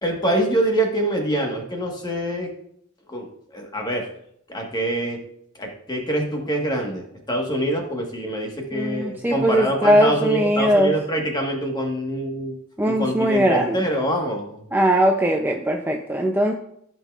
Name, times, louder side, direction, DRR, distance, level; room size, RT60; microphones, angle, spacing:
voice 1, 0.0-2.5 3.1-4.1 4.5-5.2 5.6-12.6 12.9-14.6, right 1 dB, 20° left, 1 dB, 1.4 m, -25 dB
voice 2, 8.7-10.9 12.8-13.8 14.7-16.5, equal, 10° right, 2 dB, 0.5 m, -20 dB
14.5 x 5.5 x 2.4 m, 0.70 s
head